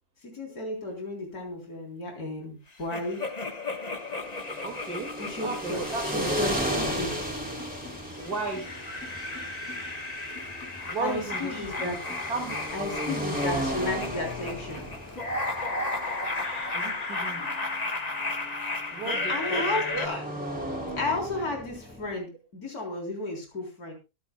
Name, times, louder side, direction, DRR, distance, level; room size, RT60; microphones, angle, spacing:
voice 1, 0.2-3.2 5.2-5.8 6.1-6.5 6.8-7.1 11.0-12.0 12.7-14.9 19.3-20.2 21.0-23.9, left 2 dB, 80° left, 1 dB, 4.3 m, -33 dB
sound 1, 2.9-7.6 8.2-20.1, left 2 dB, 30° left, 1.3 m, -34 dB
sound 2, 4.3-22.2, equal, 5° right, 3.2 m, -35 dB
voice 2, 4.6-5.1 5.4-6.8 8.2-8.7 10.8-12.0 12.3-13.4 16.4-17.5 18.9-19.7, right 4 dB, 85° right, 1 dB, 2.8 m, -36 dB
Crowd, 5.9-17.4, left 2 dB, 10° left, 2.3 m, -48 dB
23.5 x 9.8 x 2.3 m, 0.28 s
omnidirectional pair, 1.6 m